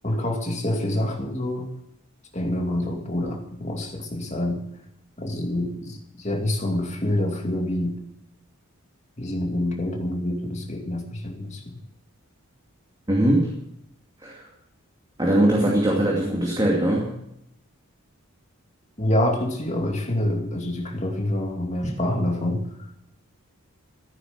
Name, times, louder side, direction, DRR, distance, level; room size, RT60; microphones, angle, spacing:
voice 1, 0.0-1.7 2.3-4.6 5.2-8.0 9.2-11.8 19.0-22.7, left 1 dB, 30° left, 2 dB, 2.4 m, -26 dB
voice 2, 13.1-13.5 14.2-14.4 15.2-17.1, right 1 dB, 20° right, -3 dB, 2.5 m, -21 dB
15.0 x 9.2 x 7.4 m, 0.79 s
head